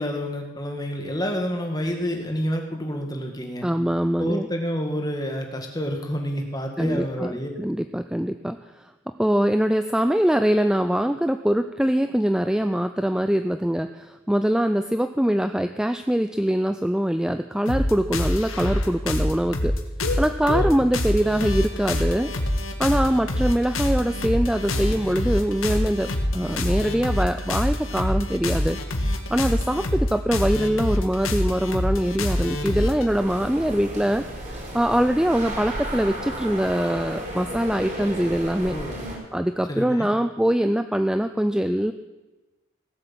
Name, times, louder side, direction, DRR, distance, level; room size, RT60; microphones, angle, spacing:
voice 1, 0.0-3.7 4.2-7.5 20.5-20.9 38.7-39.1 39.7-40.2, equal, 20° left, 3 dB, 1.8 m, -29 dB
voice 2, 3.6-4.5 6.8-8.8 9.2-19.7 20.2-22.3 22.8-28.8 29.1-38.8 39.3-41.9, equal, 5° right, 8 dB, 0.4 m, -23 dB
sound 1, 17.7-33.1, left 1 dB, 85° left, 1.8 m, -25 dB
sound 2, 33.1-39.2, right 1 dB, 40° right, 4.9 m, -33 dB
17.5 x 8.0 x 7.5 m, 1.1 s
head